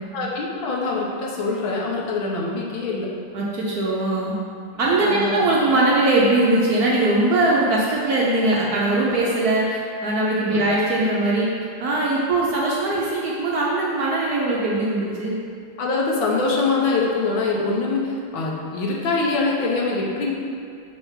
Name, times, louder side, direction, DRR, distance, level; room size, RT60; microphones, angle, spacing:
voice 1, 0.1-3.1 4.7-5.4 10.5-10.6 15.8-20.3, left 3 dB, 80° left, -3 dB, 1.7 m, -24 dB
voice 2, 3.3-4.4 4.8-11.5 11.8-15.3, right 2 dB, 60° right, -4 dB, 1.0 m, -21 dB
6.2 x 3.4 x 5.6 m, 2.4 s
omnidirectional pair, 2.2 m